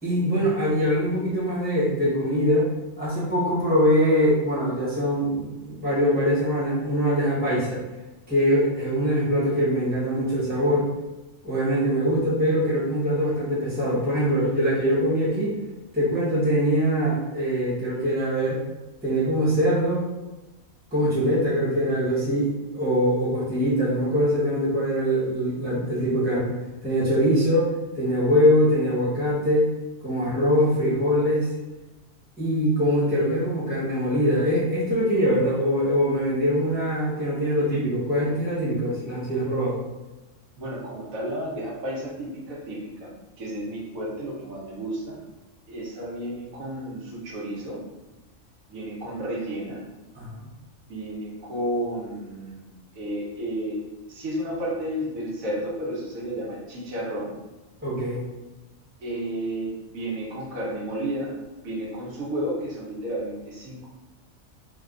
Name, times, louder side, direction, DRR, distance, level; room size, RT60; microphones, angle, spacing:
voice 1, 0.0-2.7 3.0-7.8 8.3-10.9 11.4-15.6 15.9-18.6 19.0-20.0 20.9-26.5 26.8-29.7 30.0-31.5 32.4-39.8 50.1-50.5 57.8-58.2, equal, 10° right, -8 dB, 0.8 m, -23 dB
voice 2, 40.6-43.1 43.4-45.2 45.7-47.8 48.7-49.8 50.9-53.8 54.1-57.4 59.0-61.3 61.6-63.9, right 1 dB, 90° right, -4 dB, 1.2 m, -32 dB
3.2 x 2.2 x 2.4 m, 1.1 s
omnidirectional pair, 1.4 m